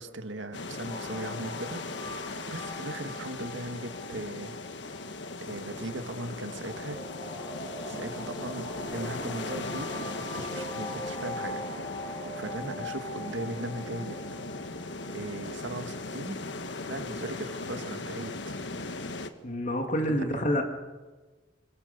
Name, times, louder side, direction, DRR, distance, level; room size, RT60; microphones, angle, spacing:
voice 1, 0.0-1.8 2.1-4.6 5.4-7.0 7.9-11.6 12.4-14.2 15.1-16.4 16.9-18.6 20.1-20.5, right 1 dB, 80° right, 7 dB, 2.2 m, -38 dB
sound 1, 0.5-19.3, left 3 dB, 70° left, 1.5 m, -38 dB
sound 2, 0.8-16.1, left 1 dB, 25° left, 6.4 m, -41 dB
voice 2, 19.4-20.6, equal, 45° left, 4 dB, 2.7 m, -27 dB
26.0 x 24.0 x 6.9 m, 1.3 s
head